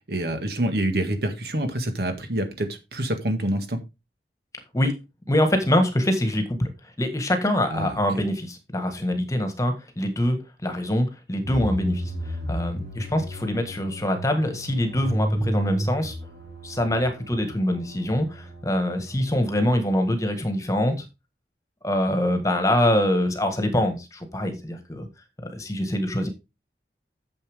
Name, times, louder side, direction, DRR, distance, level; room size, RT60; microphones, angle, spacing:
voice 1, 0.1-3.8 7.7-8.0, right 1 dB, 60° right, 7 dB, 1.8 m, -26 dB
voice 2, 5.3-6.7 7.0-16.2 16.6-21.1 21.8-25.1 25.4-26.3, left 1 dB, 20° left, 7 dB, 1.6 m, -24 dB
sound 1, 11.4-20.3, right 1 dB, 90° right, 5.5 m, -33 dB
9.6 x 7.2 x 3.6 m, 0.25 s
head